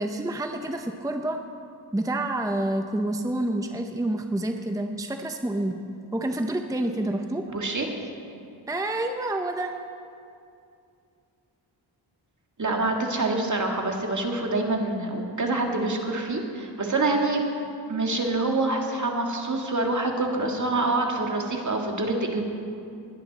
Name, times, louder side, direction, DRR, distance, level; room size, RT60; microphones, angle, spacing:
voice 1, 0.0-1.4 1.9-5.7 6.1-7.4 8.7-9.8, right 1 dB, 5° right, 5 dB, 0.8 m, -28 dB
voice 2, 7.5-7.9 12.6-17.4 17.9-22.4, right 2 dB, 40° right, 1 dB, 2.2 m, -26 dB
20.0 x 11.0 x 4.2 m, 2.5 s
cardioid pair, 55°, 47 cm